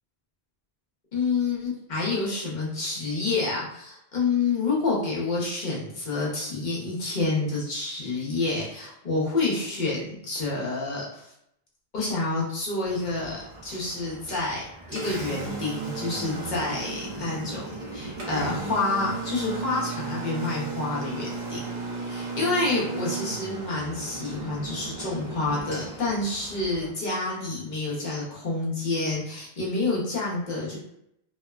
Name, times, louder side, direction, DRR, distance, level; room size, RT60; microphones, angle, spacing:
voice 1, 1.1-11.3 11.9-30.8, left 3 dB, 50° left, -5 dB, 0.9 m, -28 dB
Engine, 12.8-26.9, right 3 dB, 50° right, 0.8 m, -35 dB
2.9 x 2.1 x 2.3 m, 0.77 s
omnidirectional pair, 1.0 m